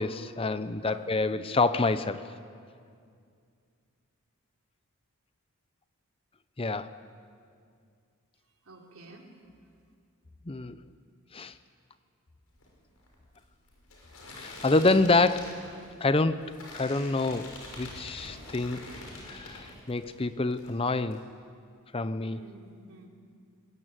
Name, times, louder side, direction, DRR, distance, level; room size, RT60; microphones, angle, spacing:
voice 1, 0.0-2.2 6.6-7.0 10.5-10.8 11.3-11.5 14.4-15.6 16.0-16.4 16.7-17.5 17.8-18.8 19.3-21.2 21.9-22.4, left 3 dB, 25° left, 12 dB, 0.6 m, -27 dB
voice 2, 0.8-1.3 8.7-9.2 22.3-23.1, right 2 dB, 70° right, 0 dB, 3.8 m, -51 dB
sound 1, 12.5-20.2 20.5-21.2, left 2 dB, 85° left, 6.4 m, -46 dB
22.0 x 20.5 x 9.0 m, 2.3 s
head